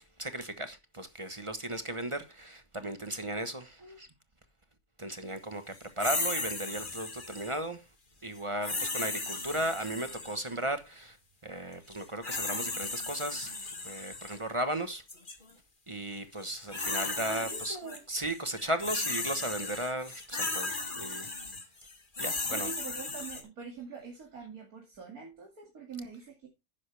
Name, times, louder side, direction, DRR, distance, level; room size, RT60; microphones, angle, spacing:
voice 1, 0.2-4.1 5.0-7.8 8.2-11.2 11.4-15.0 15.9-17.8 18.1-21.3 22.2-22.7, right 1 dB, 25° right, 1.1 m, -36 dB
sound 1, 6.0-7.6 8.6-10.5 11.9-14.4 15.1-15.3 16.4-18.0 18.3-23.4, left 3 dB, 35° left, 2.1 m, -36 dB
voice 2, 17.3-18.1 22.5-26.5, right 4 dB, 80° right, 2.9 m, -44 dB
11.5 x 10.0 x 3.3 m
omnidirectional pair, 1.5 m